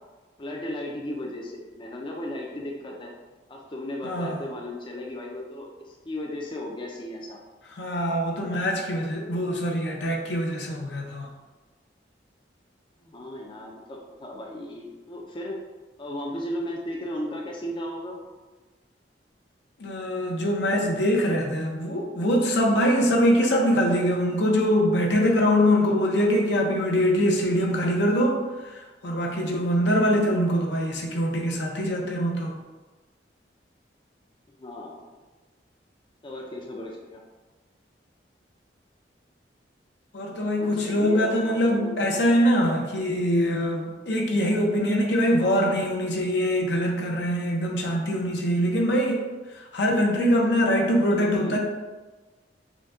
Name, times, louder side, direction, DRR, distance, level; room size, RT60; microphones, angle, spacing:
voice 1, 0.4-3.1 3.5-7.4 13.0-15.6 16.0-18.2 34.6-35.0 36.2-37.2 40.5-41.9 51.1-51.6, left 1 dB, 30° left, -1 dB, 0.5 m, -35 dB
voice 2, 4.0-4.4 7.8-11.3 19.8-32.5 40.1-49.2 49.5-51.6, equal, 75° left, 0 dB, 0.7 m, -23 dB
5.0 x 2.2 x 3.6 m, 1.3 s
head